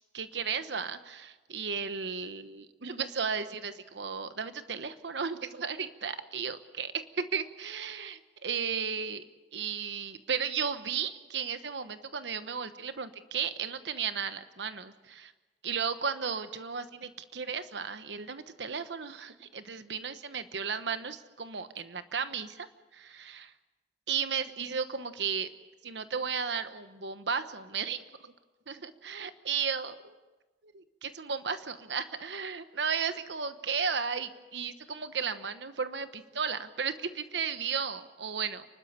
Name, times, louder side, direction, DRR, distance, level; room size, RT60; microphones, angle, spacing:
voice 1, 0.1-9.2 9.5-15.3 15.6-22.7 22.9-23.5 24.1-25.5 25.8-28.3 28.7-30.1 30.6-38.7, right 6 dB, 80° right, 11 dB, 1.1 m, -34 dB
29.5 x 12.5 x 8.7 m, 1.2 s
head